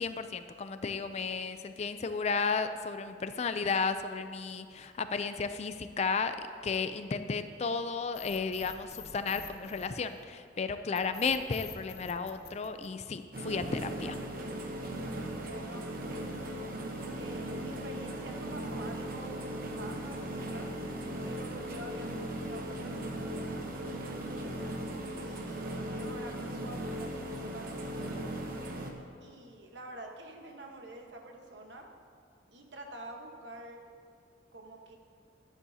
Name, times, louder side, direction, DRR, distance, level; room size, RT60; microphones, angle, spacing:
voice 1, 0.0-6.4 6.6-14.2, left 5 dB, 35° left, 10 dB, 0.3 m, -33 dB
sound 1, 8.1-10.4 10.9-13.4, left 8 dB, 60° left, 0.8 m, -47 dB
sound 2, 13.3-28.9, right 1 dB, 50° right, 1.0 m, -38 dB
voice 2, 15.5-16.7 17.1-19.4 19.8-20.7 21.2-24.4 25.2-28.3 29.2-31.9 32.5-33.8 34.5-35.0, right 1 dB, 70° right, 2 dB, 1.2 m, -47 dB
12.5 x 9.9 x 2.8 m, 2.4 s
head